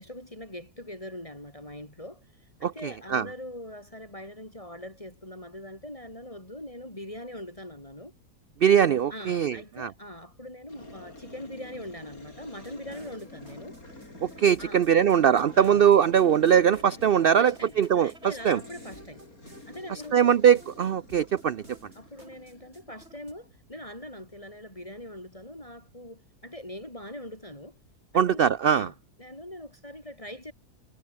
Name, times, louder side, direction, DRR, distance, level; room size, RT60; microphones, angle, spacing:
voice 1, 0.0-8.1 9.1-13.8 14.6-14.8 15.5-15.8 17.4-19.2 19.7-20.5 21.9-27.8 28.1-30.5, left 1 dB, 20° left, 6.6 m, -42 dB
voice 2, 2.6-3.3 8.6-9.9 14.2-18.6 19.9-21.6 28.1-28.9, right 8 dB, 60° right, 0.6 m, -21 dB
sound 1, 10.7-23.6, left 2 dB, 65° left, 7.3 m, -49 dB
sound 2, 12.5-23.3, right 2 dB, 45° right, 5.7 m, -54 dB
omnidirectional pair, 1.6 m